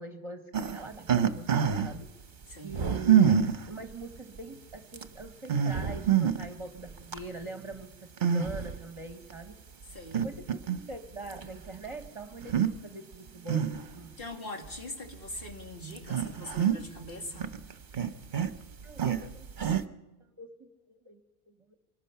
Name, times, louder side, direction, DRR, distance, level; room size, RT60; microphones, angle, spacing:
voice 1, 0.0-2.1 2.6-9.5 10.1-13.7 13.9-14.2 18.8-19.9 20.2-21.2, right 2 dB, 30° right, 4 dB, 1.1 m, -43 dB
sound 1, 0.5-2.0 2.7-3.7 4.4-4.5 4.9-5.0 5.4-6.5 6.9-7.2 8.2-8.8 9.3-9.4 10.1-10.9 11.3-11.4 12.4-12.7 13.1-14.0 14.7-14.8 15.4-15.5 15.9-17.1 17.3-19.8, right 8 dB, 55° right, 0.9 m, -26 dB
voice 2, 2.5-2.8 9.9-10.2 14.2-17.5, left 1 dB, 65° left, 1 dB, 2.5 m, -42 dB
24.0 x 19.0 x 5.7 m, 1.1 s
omnidirectional pair, 1.0 m